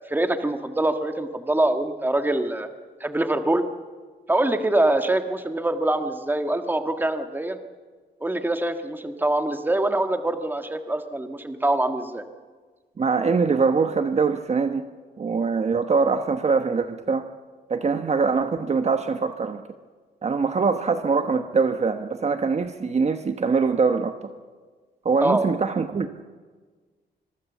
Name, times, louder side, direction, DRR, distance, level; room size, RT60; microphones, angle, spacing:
voice 1, 0.0-2.7 3.0-3.6 4.3-7.6 8.2-12.2 25.2-25.4, right 1 dB, 10° right, 7 dB, 1.6 m, -24 dB
voice 2, 13.0-14.8 15.2-17.3 17.7-19.6 20.2-24.1 25.0-26.1, right 5 dB, 40° right, 8 dB, 1.1 m, -23 dB
25.5 x 22.5 x 7.3 m, 1.4 s
cardioid pair, 120°, 18 cm